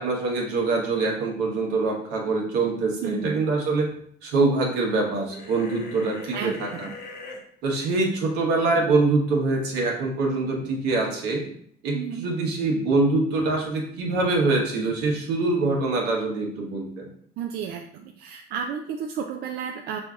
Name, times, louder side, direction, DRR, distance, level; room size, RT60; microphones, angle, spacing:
voice 1, 0.0-3.9 4.2-6.9 7.6-11.4 11.8-17.1, right 3 dB, 90° right, 0 dB, 1.0 m, -24 dB
voice 2, 3.0-3.4 6.3-7.0 11.9-12.3 17.4-20.0, right 7 dB, 70° right, 3 dB, 0.4 m, -32 dB
sound 1, 5.3-7.4, left 3 dB, 60° left, 0.9 m, -40 dB
6.1 x 2.6 x 2.4 m, 0.63 s
cardioid pair, 110°, 17 cm